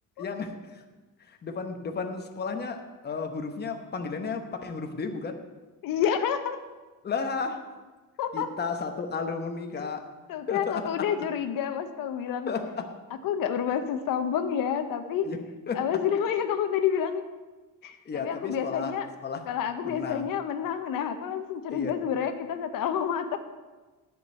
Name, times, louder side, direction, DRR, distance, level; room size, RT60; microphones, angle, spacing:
voice 1, 0.2-0.8 1.2-5.4 7.0-7.6 8.3-10.1 10.5-11.1 12.5-12.9 15.2-15.9 18.0-19.0 19.2-19.5 19.8-20.3 21.7-21.9, left 4 dB, 30° left, 5 dB, 1.0 m, -33 dB
voice 2, 5.8-6.6 8.2-8.5 9.8-9.9 10.3-12.5 13.2-15.3 15.7-17.2 17.8-19.1 19.5-23.4, left 8 dB, 80° left, 8 dB, 0.8 m, -29 dB
10.5 x 5.3 x 8.0 m, 1.3 s
cardioid pair, 145°, 33 cm